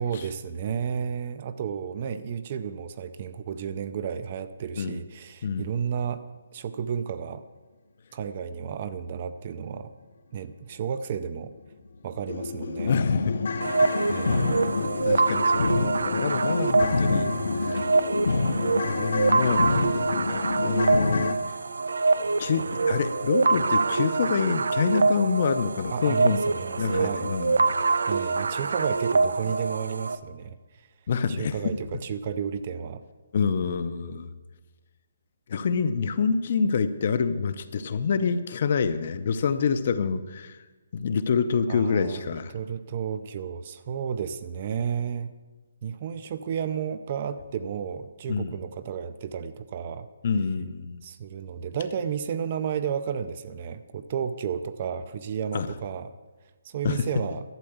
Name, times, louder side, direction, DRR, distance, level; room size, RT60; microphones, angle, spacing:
voice 1, 0.0-6.2 6.5-7.4 8.1-9.9 10.3-11.5 12.0-13.0 14.1-14.5 17.7-17.9 25.9-27.3 28.1-30.9 31.3-33.0 41.7-45.3 45.8-50.1 51.0-56.1 56.6-57.4, right 7 dB, 25° right, 12 dB, 0.4 m, -32 dB
sound 1, 11.3-11.5 11.9-12.0 12.3-21.3, left 4 dB, 60° left, 0.9 m, -28 dB
voice 2, 12.9-14.3 14.6-17.3 17.6-17.9 18.8-19.9 20.6-21.4 22.4-26.4 26.8-27.6 28.0-28.1 31.1-31.6 33.3-34.3 35.5-40.6 40.9-42.5 48.3-48.5 50.2-51.0 55.5-55.7 56.8-57.1, left 5 dB, 35° left, 12 dB, 0.6 m, -27 dB
sound 2, 13.6-30.2, right 4 dB, 85° right, 0.7 m, -25 dB
12.0 x 7.8 x 7.9 m, 1.2 s
hypercardioid pair, 180°, 0 cm